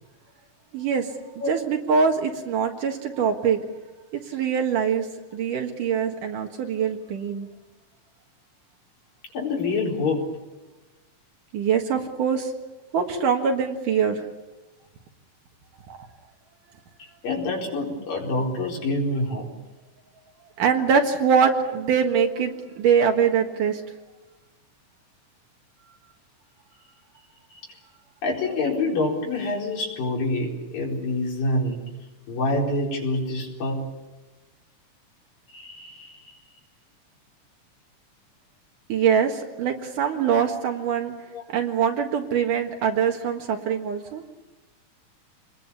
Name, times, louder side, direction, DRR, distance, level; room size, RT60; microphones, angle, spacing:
voice 1, 0.7-1.1 1.5-3.6 4.1-5.1 5.3-7.5 11.5-12.5 12.9-14.3 15.9-16.0 20.6-23.8 38.9-41.1 41.5-44.2, right 6 dB, 70° right, 3 dB, 3.2 m, -23 dB
voice 2, 9.3-10.2 17.2-19.5 22.4-22.5 27.5-27.6 28.2-31.9 32.3-33.8 35.5-36.3 41.3-41.4, left 2 dB, 85° left, -3 dB, 6.2 m, -26 dB
27.0 x 21.0 x 7.1 m, 1.1 s
omnidirectional pair, 3.9 m